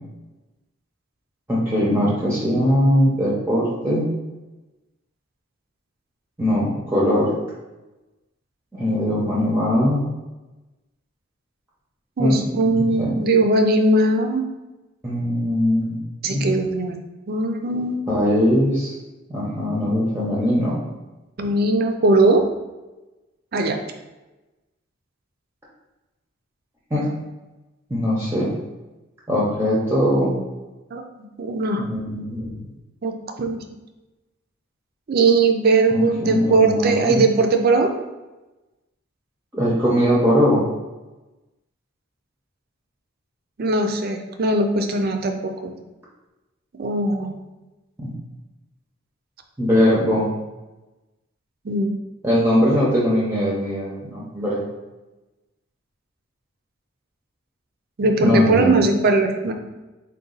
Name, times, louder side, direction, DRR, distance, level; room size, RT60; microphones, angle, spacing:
voice 1, 1.5-4.1 6.4-7.3 8.7-10.1 12.2-12.4 12.7-13.1 15.0-16.5 18.1-18.9 19.3-20.8 26.9-27.1 27.9-28.5 29.3-30.4 31.8-32.6 35.9-37.2 39.5-40.7 48.0-48.1 49.6-50.3 52.2-54.6 58.2-58.8, equal, 10° right, -7 dB, 0.6 m, -20 dB
voice 2, 12.2-14.4 16.2-17.0 17.3-18.0 21.4-22.5 23.5-23.8 30.9-31.8 33.0-33.6 35.1-37.9 43.6-45.7 46.7-47.3 51.6-51.9 58.0-59.5, right 2 dB, 50° right, 5 dB, 0.4 m, -20 dB
4.0 x 2.2 x 3.7 m, 1.1 s
head